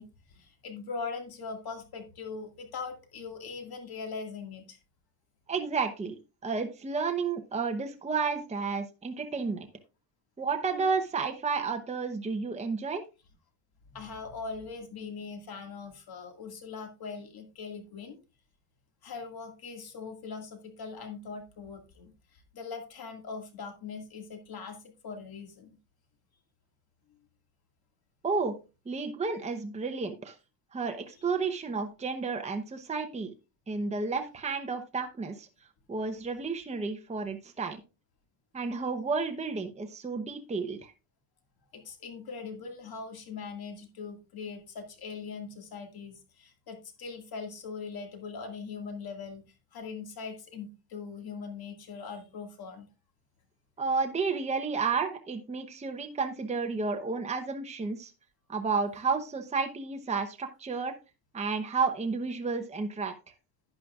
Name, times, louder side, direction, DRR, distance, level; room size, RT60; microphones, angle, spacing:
voice 1, 0.0-4.8 5.5-5.7 13.9-18.2 19.0-24.8 25.0-25.8 31.1-31.3 31.8-31.9 41.7-49.4 49.7-52.9, left 5 dB, 55° left, 4 dB, 2.1 m, -41 dB
voice 2, 5.5-9.7 10.4-13.0 28.2-28.5 28.9-30.3 30.7-33.3 33.7-35.5 35.9-37.8 38.5-40.9 53.8-58.1 58.5-60.9 61.3-63.1, right 4 dB, 15° right, 5 dB, 0.8 m, -31 dB
11.5 x 10.0 x 2.4 m, 0.29 s
cardioid pair, 165°, 43 cm